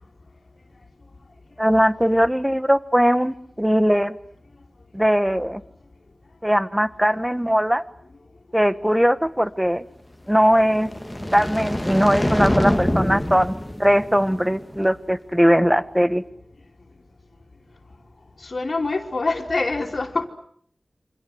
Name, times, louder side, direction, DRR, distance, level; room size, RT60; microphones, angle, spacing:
voice 1, 1.6-4.2 4.9-5.6 6.4-7.8 8.5-9.8 10.3-10.9 11.3-13.5 13.8-16.2, equal, 5° right, 13 dB, 1.4 m, -19 dB
sound 1, 10.5-14.8, left 1 dB, 10° left, 1.9 m, -25 dB
voice 2, 18.4-20.3, left 3 dB, 65° left, -3 dB, 3.0 m, -25 dB
28.5 x 25.5 x 7.9 m, 0.65 s
wide cardioid pair, 70°, 0 cm